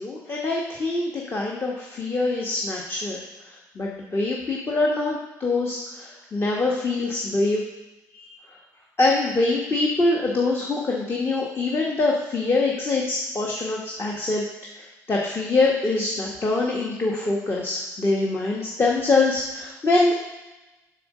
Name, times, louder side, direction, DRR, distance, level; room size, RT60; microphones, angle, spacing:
voice 1, 0.0-3.2 3.8-7.6 8.1-8.3 9.0-14.4 15.1-20.1, left 3 dB, 35° left, -2 dB, 1.1 m, -24 dB
6.8 x 4.0 x 6.5 m, 1.1 s
cardioid pair, 80°, 7 cm